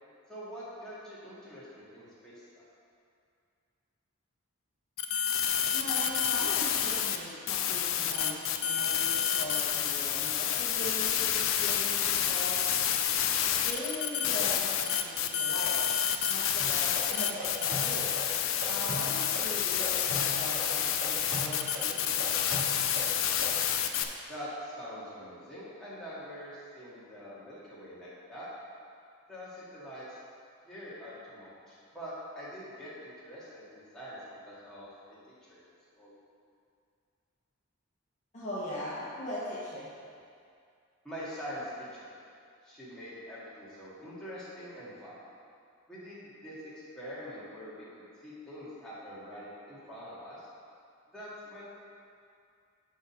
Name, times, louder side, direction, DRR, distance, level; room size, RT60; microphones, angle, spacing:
voice 1, 0.3-2.6 24.3-28.5 29.3-30.2 30.7-35.6 36.0-36.1 41.0-42.1 42.6-45.2 45.9-50.5 51.1-51.6, equal, 5° left, -11 dB, 1.8 m, -44 dB
sound 1, 5.0-7.2 7.5-24.0, left 9 dB, 65° left, 0.5 m, -29 dB
voice 2, 5.7-12.7 13.5-15.8 16.2-18.1 18.6-22.3 38.3-39.9, left 1 dB, 35° left, -9 dB, 1.2 m, -40 dB
sound 2, 16.6-23.6, equal, 85° right, 1.8 m, -39 dB
6.3 x 4.9 x 6.2 m, 2.4 s
head